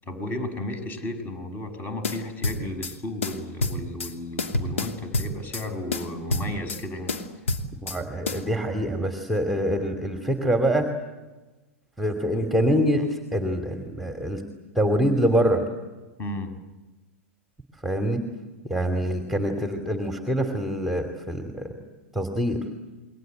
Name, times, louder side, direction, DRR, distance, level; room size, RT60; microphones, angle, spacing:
voice 1, 0.0-7.1 16.2-16.6, left 1 dB, 25° left, 9 dB, 6.3 m, -34 dB
sound 1, 2.0-2.9 3.2-4.1 4.4-5.7 5.9-6.8 7.1-8.0 8.3-8.4, left 2 dB, 80° left, 2.8 m, -28 dB
voice 2, 7.8-10.9 12.0-14.4 14.7-15.6 17.8-18.2 18.6-21.7 22.1-22.6, equal, ahead, 5 dB, 2.7 m, -25 dB
29.0 x 23.0 x 8.0 m, 1.2 s
hypercardioid pair, 105°, 7 cm